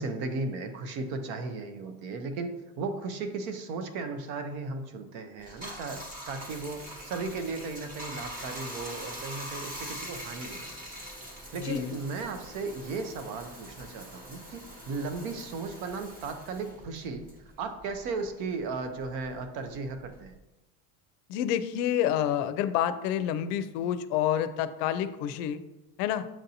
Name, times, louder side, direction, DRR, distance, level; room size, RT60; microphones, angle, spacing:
voice 1, 0.0-10.7 11.5-17.3 17.6-20.4, right 3 dB, 55° right, 7 dB, 0.7 m, -36 dB
Bathtub (filling or washing), 5.4-18.2 18.5-20.4, equal, 20° right, 0.7 m, -43 dB
voice 2, 11.6-11.9 21.3-25.6 26.0-26.2, left 10 dB, 85° left, 12 dB, 0.5 m, -28 dB
7.2 x 2.6 x 2.7 m, 0.98 s
cardioid pair, 170°, 48 cm